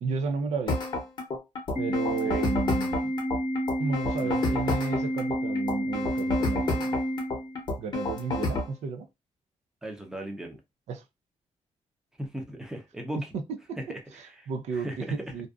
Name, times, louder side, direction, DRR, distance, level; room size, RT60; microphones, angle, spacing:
voice 1, 0.0-0.8 1.8-3.1 3.8-7.0 7.8-9.1 10.9-11.0 13.3-13.4 14.5-14.9 15.3-15.5, right 5 dB, 75° right, 0.4 m, -32 dB
sound 1, 0.7-8.7, left 2 dB, 40° left, 0.7 m, -30 dB
Organ, 1.8-7.8, equal, 25° right, 0.9 m, -30 dB
voice 2, 4.2-4.6 9.8-10.6 12.2-13.3 13.8-15.5, right 1 dB, 5° right, 0.5 m, -38 dB
2.5 x 2.2 x 2.3 m
wide cardioid pair, 165°, 12 cm